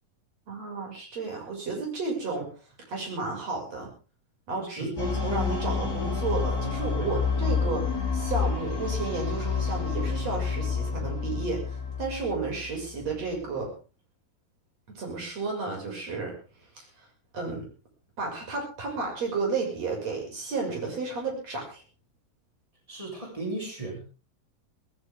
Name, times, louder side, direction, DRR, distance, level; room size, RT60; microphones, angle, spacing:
voice 1, 0.5-2.5 2.9-3.9 4.5-13.7 14.9-16.3 16.7-16.9 17.3-17.7 18.2-21.8, right 3 dB, 45° right, 1 dB, 7.2 m, -32 dB
sound 1, 5.0-13.1, left 5 dB, 25° left, 7.5 m, -29 dB
voice 2, 22.9-24.0, right 2 dB, 10° right, 0 dB, 7.0 m, -35 dB
18.5 x 18.0 x 3.6 m, 0.35 s
omnidirectional pair, 4.1 m